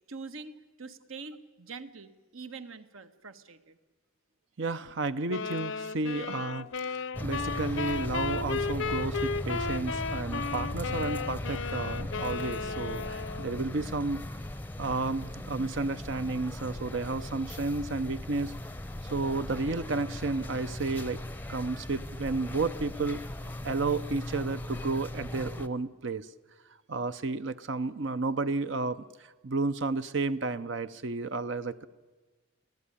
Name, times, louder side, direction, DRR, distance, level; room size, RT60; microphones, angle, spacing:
voice 1, 0.1-3.8, right 4 dB, 75° right, 10 dB, 1.4 m, -44 dB
voice 2, 4.6-14.4 14.8-18.5 19.1-21.2 21.5-26.3 26.9-31.9, right 3 dB, 60° right, 12 dB, 0.6 m, -32 dB
sound 1, 5.3-13.7, left 4 dB, 65° left, 0.7 m, -34 dB
sound 2, 7.1-25.7, left 1 dB, 10° left, 0.6 m, -38 dB
24.0 x 16.0 x 9.9 m, 1.2 s
head